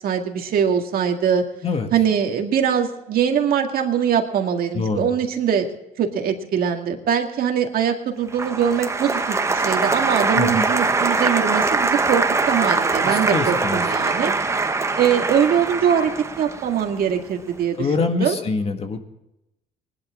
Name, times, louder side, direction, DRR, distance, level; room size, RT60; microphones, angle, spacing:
voice 1, 0.0-1.4 1.9-5.7 6.0-14.3 15.0-16.1 16.4-18.4, right 8 dB, 60° right, 4 dB, 2.0 m, -22 dB
voice 2, 4.7-5.1 10.3-10.7 13.0-13.8 17.8-19.0, left 4 dB, 35° left, 6 dB, 1.8 m, -24 dB
Applause, 8.3-17.4, right 3 dB, 15° right, 0.9 m, -22 dB
20.0 x 11.5 x 3.7 m, 0.90 s
cardioid pair, 110°, 17 cm